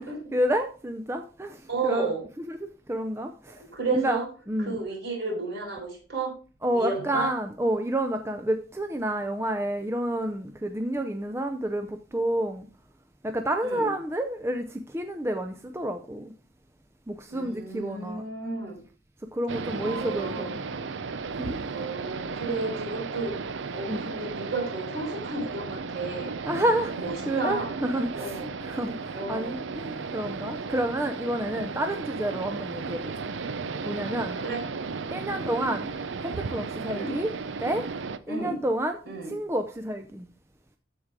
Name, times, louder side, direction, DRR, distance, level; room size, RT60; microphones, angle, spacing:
voice 1, 0.3-2.1 2.5-3.6 4.0-4.8 6.6-12.7 13.2-16.3 17.1-18.2 19.3-20.6 21.4-21.6 23.9-24.0 26.5-33.1 33.8-34.4 35.1-35.9 36.2-37.3 37.6-37.8 38.3-39.0 39.2-40.3, right 1 dB, 15° right, 0.4 m, -29 dB
voice 2, 1.7-2.2 3.5-4.3 4.6-6.3 6.7-7.3 13.6-13.9 17.3-18.8 19.8-20.6 21.7-23.4 23.7-26.3 27.0-27.8 28.2-28.5 29.1-29.6 34.4-34.6 35.3-35.5 36.9-37.1 38.3-38.6 39.0-39.3, right 3 dB, 60° right, 5.1 m, -32 dB
sound 1, 19.5-38.2, right 4 dB, 80° right, 0.6 m, -35 dB
14.0 x 4.8 x 3.6 m
head